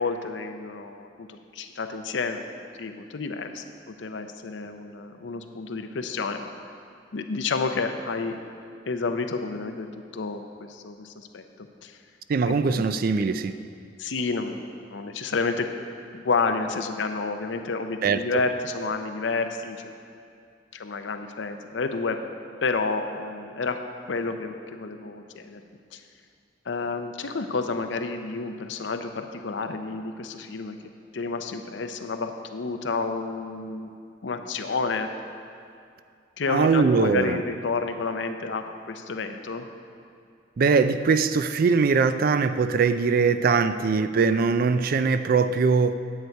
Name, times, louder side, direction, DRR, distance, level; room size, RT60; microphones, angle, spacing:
voice 1, 0.0-6.5 7.1-8.4 8.9-11.4 11.8-11.9 12.5-12.8 13.1-13.3 14.0-15.7 16.1-19.9 20.7-22.2 22.6-23.8 24.1-25.6 25.9-26.0 26.7-30.8 31.1-33.9 34.2-35.1 36.4-39.6, left 4 dB, 80° left, 7 dB, 0.6 m, -30 dB
voice 2, 12.3-13.5 18.0-18.2 36.5-37.4 40.6-45.9, right 5 dB, 55° right, 12 dB, 0.4 m, -21 dB
9.6 x 7.9 x 4.5 m, 2.3 s
head